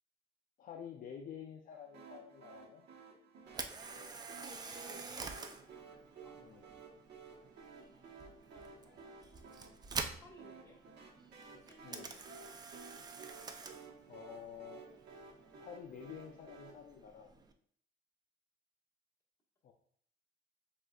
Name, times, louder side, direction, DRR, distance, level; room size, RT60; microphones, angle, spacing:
voice 1, 0.6-2.9 6.4-6.6 11.8-12.1 14.1-14.8 15.6-17.3 19.6-19.7, left 8 dB, 50° left, 3 dB, 0.4 m, -49 dB
sound 1, 1.9-16.7, right 4 dB, 70° right, 1.0 m, -55 dB
Camera, 3.5-17.5, right 4 dB, 20° right, 0.3 m, -48 dB
voice 2, 4.6-5.3 6.2-6.8 8.5-9.1 9.4-9.5 10.2-10.9 11.6-12.3, equal, 15° left, -3 dB, 1.3 m, -60 dB
7.4 x 2.5 x 2.3 m, 0.62 s
cardioid pair, 125°, 18 cm